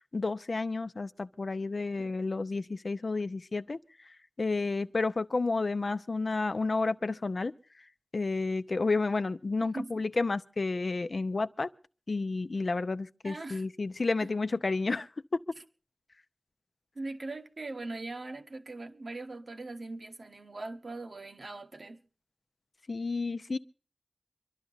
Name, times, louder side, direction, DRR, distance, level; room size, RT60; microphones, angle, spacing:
voice 1, 0.0-7.5 8.1-11.7 12.1-15.1 22.9-23.6, left 3 dB, 75° left, 0.6 m, -31 dB
voice 2, 9.6-10.0 13.2-13.6 16.9-22.0, right 2 dB, 80° right, 1.1 m, -40 dB
26.0 x 11.5 x 3.9 m
wide cardioid pair, 45°, 0 cm